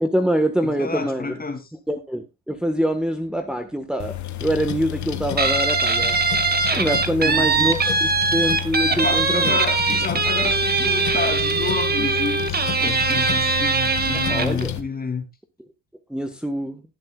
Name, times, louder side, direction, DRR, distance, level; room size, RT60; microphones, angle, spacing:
voice 1, 0.0-1.3 1.9-6.2 6.7-9.6 14.3-14.7 16.1-16.8, equal, 5° right, 1.4 m, -24 dB
voice 2, 0.6-1.6 7.2-7.7 8.9-15.2, left 4 dB, 30° left, 2.9 m, -29 dB
sound 1, 4.0-14.8, left 12 dB, 70° left, 1.6 m, -31 dB
Guitar, 5.4-14.6, right 4 dB, 30° right, 2.0 m, -21 dB
20.0 x 7.5 x 2.4 m
cardioid pair, 90°, 30 cm